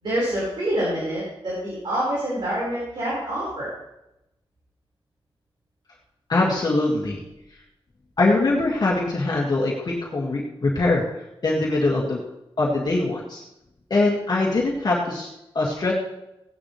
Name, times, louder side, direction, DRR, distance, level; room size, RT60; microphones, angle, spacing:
voice 1, 0.0-3.7, right 1 dB, 60° right, -7 dB, 4.8 m, -26 dB
voice 2, 6.3-7.2 8.2-11.0 11.4-12.2 12.6-13.4 13.9-15.3 15.5-15.9, left 2 dB, 45° left, -4 dB, 2.0 m, -22 dB
17.5 x 9.9 x 3.3 m, 0.90 s
wide cardioid pair, 125°, 10 cm